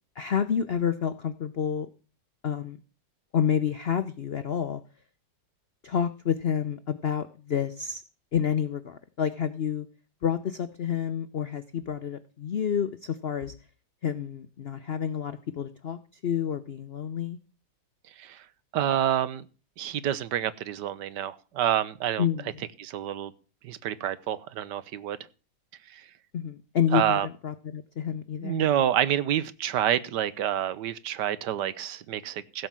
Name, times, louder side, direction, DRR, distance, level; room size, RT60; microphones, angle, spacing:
voice 1, 0.2-1.9 2.4-2.8 3.3-4.8 5.8-8.0 8.3-9.9 10.2-13.5 14.0-17.4 22.2-22.5 26.3-28.7, left 8 dB, 80° left, 12 dB, 0.5 m, -29 dB
voice 2, 18.7-19.4 19.8-22.3 22.8-23.3 23.6-25.2 25.9-26.1 26.9-27.3 28.4-32.7, right 11 dB, 70° right, 16 dB, 1.3 m, -28 dB
16.0 x 5.4 x 7.4 m, 0.35 s
omnidirectional pair, 2.0 m